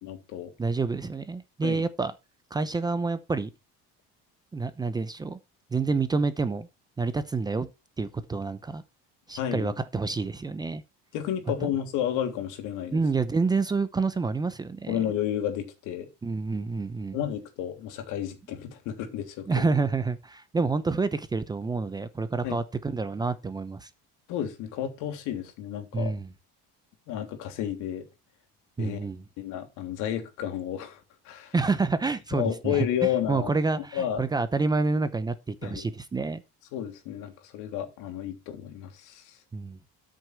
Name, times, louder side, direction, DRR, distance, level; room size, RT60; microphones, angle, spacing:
voice 1, 0.0-0.5 1.6-1.8 9.4-9.7 11.1-13.0 14.9-16.1 17.1-19.7 22.4-22.6 24.3-26.1 27.1-28.1 28.8-29.0 29.4-31.0 31.2-31.5 32.3-33.5 33.9-34.2 35.6-35.8 36.7-39.2, left 10 dB, 70° left, 3.1 m, -31 dB
voice 2, 0.6-2.1 2.5-3.5 4.5-5.4 5.7-6.7 7.0-7.7 8.0-8.8 9.3-10.8 11.6-11.7 12.9-15.0 16.2-17.2 19.5-23.9 25.9-26.3 28.8-29.2 31.5-36.4 39.5-39.8, right 4 dB, 15° right, 0.7 m, -28 dB
13.5 x 6.4 x 4.6 m
cardioid pair, 170°, 31 cm